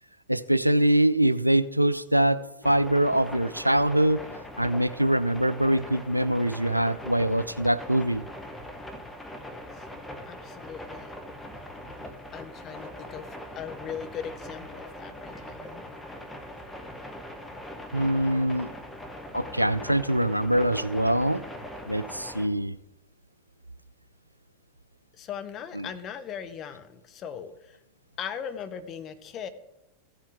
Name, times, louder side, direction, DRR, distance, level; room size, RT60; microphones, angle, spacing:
voice 1, 0.3-4.3 4.6-8.2 17.9-18.7 19.3-21.4 21.9-22.8 25.8-25.9, right 1 dB, 90° right, 0.4 m, -24 dB
sound 1, 2.6-22.5, equal, 5° left, 1.1 m, -41 dB
voice 2, 9.4-9.9 10.3-11.1 12.3-15.8 25.1-27.8 28.2-29.5, left 8 dB, 30° left, 0.8 m, -39 dB
15.5 x 7.2 x 3.6 m
figure-of-eight pair, 90°, 0 cm